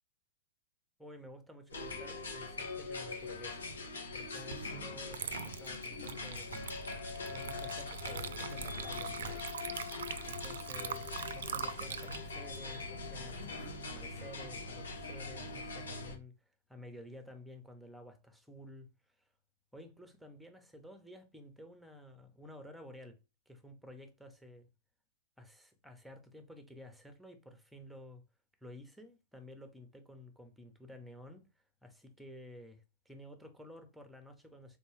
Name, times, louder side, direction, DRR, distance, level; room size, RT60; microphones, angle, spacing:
voice 1, 1.0-3.7 4.1-6.8 7.3-9.4 10.3-13.5 13.9-16.4 16.7-19.2 19.7-23.2 23.5-24.7 25.4-28.2 28.6-31.5 31.8-34.8, left 1 dB, ahead, 0.7 m, -52 dB
sound 1, 1.7-16.2, left 3 dB, 90° left, 0.9 m, -42 dB
Water / Liquid, 4.5-4.7 5.1-13.6, right 7 dB, 75° right, 0.4 m, -43 dB
3.8 x 2.2 x 3.1 m
hypercardioid pair, 115°, 0 cm